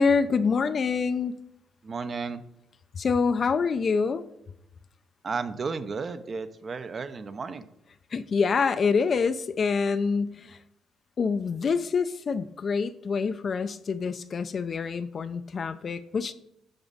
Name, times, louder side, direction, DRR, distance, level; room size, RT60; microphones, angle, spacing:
voice 1, 0.0-1.3 2.9-4.2 8.1-10.6 11.2-16.3, left 5 dB, 45° left, 11 dB, 0.5 m, -26 dB
voice 2, 1.8-2.4 5.2-7.7, right 4 dB, 40° right, 12 dB, 0.7 m, -33 dB
8.8 x 6.1 x 4.1 m, 0.82 s
cardioid pair, 90°, 0 cm